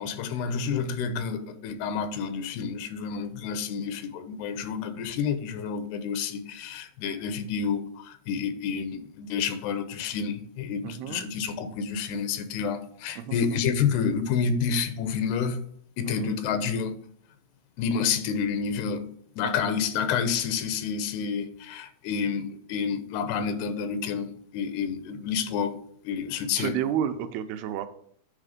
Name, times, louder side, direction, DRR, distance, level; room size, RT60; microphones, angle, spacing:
voice 1, 0.0-15.6 16.0-16.9 17.8-19.1 19.4-25.8 26.0-26.7, left 6 dB, 90° left, 2.9 m, -29 dB
voice 2, 10.8-11.2 13.2-13.6 16.1-16.3 26.6-27.9, right 10 dB, 85° right, 2.6 m, -31 dB
9.6 x 3.3 x 5.1 m
omnidirectional pair, 4.5 m